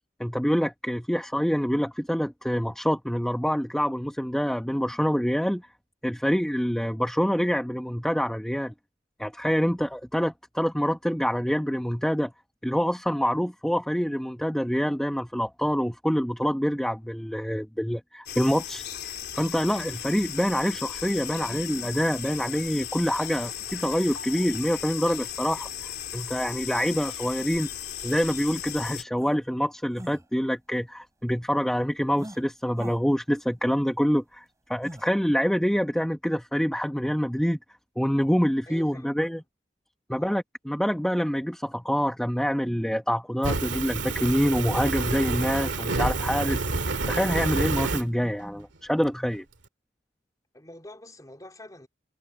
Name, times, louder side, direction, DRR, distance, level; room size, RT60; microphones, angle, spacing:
voice 1, 0.2-5.6 6.0-8.7 9.2-12.3 12.6-18.8 19.3-25.7 26.1-27.7 28.0-37.6 38.0-39.4 40.1-46.6 47.0-49.4, equal, 5° left, 1.0 m, -26 dB
sound 1, 18.3-29.0, left 10 dB, 60° left, 3.7 m, -36 dB
sound 2, 28.4-28.5 29.2-29.3 29.9-30.2 32.2-32.4 32.8-33.0 34.8-35.0, right 1 dB, 15° right, 3.4 m, -41 dB
voice 2, 38.7-39.4 40.1-40.4 50.5-51.9, left 1 dB, 20° left, 3.8 m, -46 dB
Fire, 43.4-48.0, right 3 dB, 80° right, 2.0 m, -28 dB
head